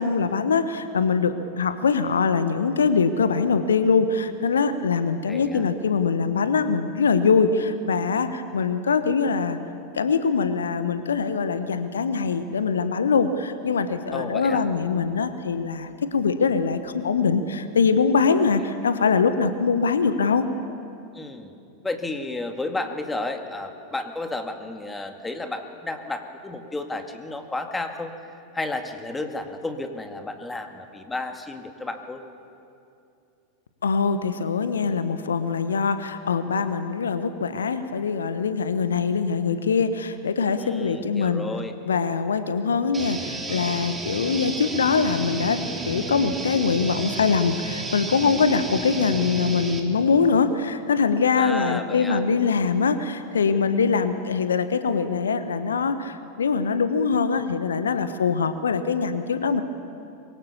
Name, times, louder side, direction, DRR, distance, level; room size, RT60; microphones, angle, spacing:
voice 1, 0.0-9.6 9.9-20.5 33.8-41.4 41.8-59.6, left 5 dB, 70° left, 11 dB, 1.1 m, -23 dB
voice 2, 5.3-5.6 14.1-14.6 21.1-21.5 21.8-28.1 28.5-32.2 40.5-41.7 51.4-52.2, left 2 dB, 10° left, 5 dB, 2.1 m, -32 dB
sound 1, 42.9-49.8, right 3 dB, 15° right, 3.5 m, -32 dB
24.0 x 23.5 x 7.1 m, 2.6 s
figure-of-eight pair, 85°, 0 cm